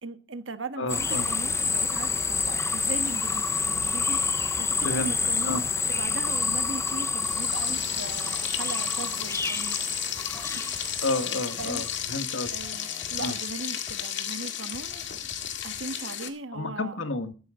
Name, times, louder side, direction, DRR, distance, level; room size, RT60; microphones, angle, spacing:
voice 1, 0.0-9.9 10.4-10.6 10.9-11.0 11.6-12.1 12.5-15.1 15.6-17.0, right 3 dB, 80° right, 1.5 m, -39 dB
voice 2, 0.8-1.3 4.8-5.1 5.4-5.6 11.0-12.5 13.2-13.3 16.5-17.3, left 2 dB, 90° left, 1.6 m, -30 dB
sound 1, 0.9-12.0, left 4 dB, 15° left, 0.7 m, -28 dB
Frying (food), 7.2-16.3, left 9 dB, 65° left, 1.9 m, -34 dB
sound 2, 9.9-16.2, equal, 5° right, 1.8 m, -50 dB
14.0 x 12.0 x 3.7 m
head